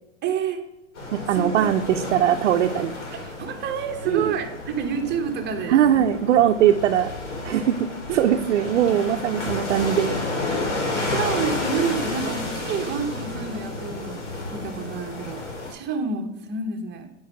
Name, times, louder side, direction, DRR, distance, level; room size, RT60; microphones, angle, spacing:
voice 1, 0.2-0.6 1.3-1.7 2.2-2.4 3.1-6.0 11.1-14.2 14.5-15.4 15.7-17.1, right 6 dB, 30° right, 5 dB, 1.2 m, -29 dB
sound 1, 1.0-15.7, left 2 dB, 85° left, 3.3 m, -31 dB
voice 2, 1.1-2.9 4.1-4.3 5.7-7.1 7.4-10.2, right 10 dB, 85° right, 3 dB, 0.7 m, -20 dB
9.4 x 4.8 x 4.8 m, 0.89 s
hypercardioid pair, 125°, 35 cm